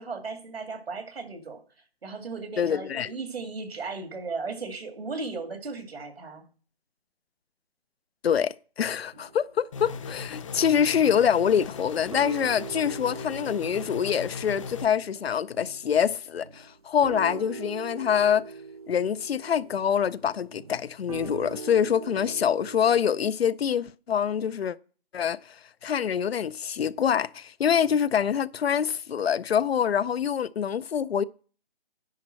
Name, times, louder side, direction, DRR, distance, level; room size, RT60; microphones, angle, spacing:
voice 1, 0.0-1.6 2.0-6.4, right 4 dB, 85° right, 2.4 m, -36 dB
voice 2, 2.6-3.1 8.2-18.5 18.9-24.8 25.1-31.2, left 8 dB, 85° left, 0.6 m, -25 dB
sound 1, 9.1-10.2 10.6-11.0 11.3-11.8 12.1-23.0, right 5 dB, 40° right, 0.4 m, -42 dB
sound 2, 9.7-14.9, left 5 dB, 35° left, 0.6 m, -39 dB
10.5 x 4.2 x 7.5 m
hypercardioid pair, 155°, 30 cm